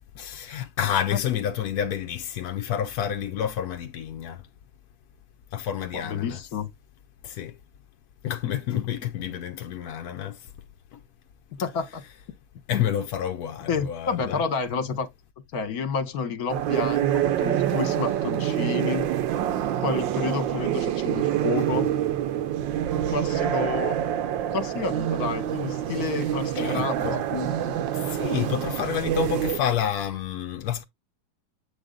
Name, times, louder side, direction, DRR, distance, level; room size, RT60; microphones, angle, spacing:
voice 1, 0.1-4.4 5.5-6.4 7.2-7.6 8.2-10.5 10.9-11.0 12.7-14.4 26.6-27.2 27.9-30.8, left 9 dB, 70° left, 0.9 m, -29 dB
voice 2, 6.0-6.7 8.7-8.9 11.6-12.0 12.7-12.8 13.7-15.1 15.5-19.1 19.8-21.9 23.1-24.0 24.5-27.8, left 5 dB, 55° left, 1.4 m, -30 dB
sound 1, 16.5-29.6, right 11 dB, 70° right, 1.3 m, -26 dB
7.8 x 3.9 x 3.7 m
omnidirectional pair, 2.2 m